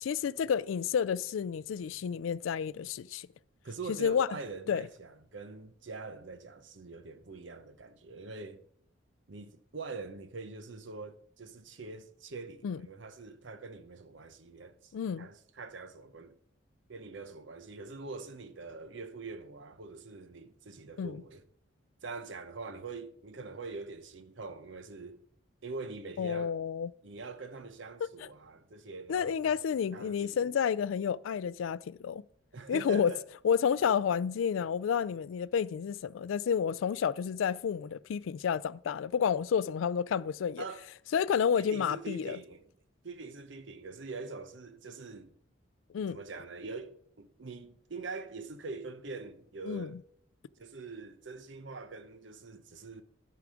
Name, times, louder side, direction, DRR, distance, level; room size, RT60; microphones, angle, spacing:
voice 1, 0.0-3.3 4.0-4.3 4.7-4.9 12.6-12.8 14.9-15.3 21.0-21.2 26.2-26.9 29.1-32.2 32.7-33.1 33.4-40.6 41.1-42.4 45.9-46.2 49.7-49.9, left 7 dB, 90° left, 0.3 m, -30 dB
voice 2, 3.6-8.6 9.3-14.9 15.2-16.3 16.9-21.4 22.0-25.2 25.6-26.5 27.0-29.6 29.9-30.5 32.5-33.2 40.6-40.8 41.5-42.7 43.0-45.3 46.1-50.0 50.6-53.0, right 3 dB, 70° right, 0.8 m, -44 dB
12.0 x 4.8 x 5.0 m
head